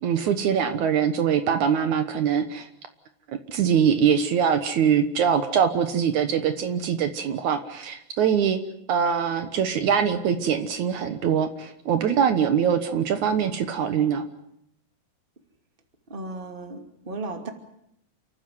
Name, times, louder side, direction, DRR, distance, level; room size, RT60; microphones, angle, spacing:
voice 1, 0.0-2.7 3.3-8.6 8.9-14.2, right 7 dB, 70° right, 9 dB, 2.6 m, -23 dB
voice 2, 16.1-17.5, right 3 dB, 15° right, 5 dB, 2.4 m, -35 dB
29.0 x 14.5 x 9.4 m, 0.76 s
omnidirectional pair, 3.7 m